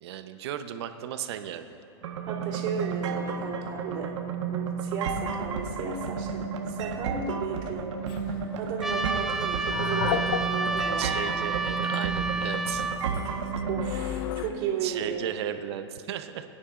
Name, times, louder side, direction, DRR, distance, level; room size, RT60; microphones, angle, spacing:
voice 1, 0.0-1.8 10.0-10.2 11.0-12.9 14.8-16.4, right 10 dB, 65° right, 8 dB, 0.8 m, -35 dB
sound 1, 2.0-13.9, right 6 dB, 80° right, 1.3 m, -32 dB
voice 2, 2.3-4.1 4.5-11.6 13.7-15.2, right 6 dB, 40° right, -5 dB, 2.9 m, -35 dB
sound 2, 8.1-8.4 9.4-10.8 11.2-11.3 11.8-12.0 12.8-14.5, left 11 dB, 50° left, 0.6 m, -33 dB
Trumpet, 8.8-13.0, right 3 dB, ahead, 0.6 m, -30 dB
22.5 x 10.0 x 2.5 m, 2.7 s
supercardioid pair, 145°, 15 cm